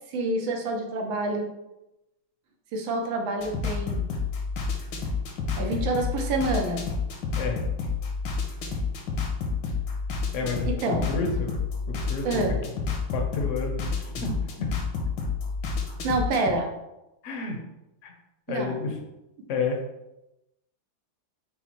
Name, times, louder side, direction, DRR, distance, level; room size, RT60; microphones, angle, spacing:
voice 1, 0.1-1.5 2.7-4.1 5.6-6.9 10.6-11.1 12.2-12.6 16.0-16.7 18.5-18.8, right 2 dB, 90° right, 2 dB, 1.6 m, -27 dB
sound 1, 3.4-16.5, left 5 dB, 80° left, 1.5 m, -30 dB
voice 2, 10.3-10.7 11.1-11.6 11.9-12.5 13.1-14.3 14.6-14.7 17.2-17.6 18.0-18.1 18.5-19.0 19.5-19.8, left 4 dB, 60° left, 2 dB, 0.8 m, -30 dB
5.5 x 2.1 x 4.4 m, 0.93 s
omnidirectional pair, 2.1 m